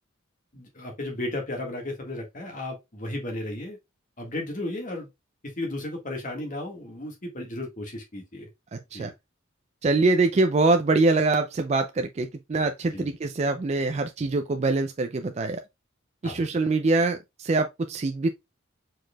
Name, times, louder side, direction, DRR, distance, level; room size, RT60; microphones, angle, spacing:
voice 1, 0.5-3.8 4.2-5.1 5.4-8.5 8.9-9.1 9.9-10.0 12.9-13.2 16.2-16.5, left 1 dB, 40° left, 1.7 m, -34 dB
voice 2, 8.7-9.1 9.8-15.6 16.2-18.3, right 3 dB, 35° right, 0.4 m, -24 dB
4.6 x 4.6 x 2.3 m
head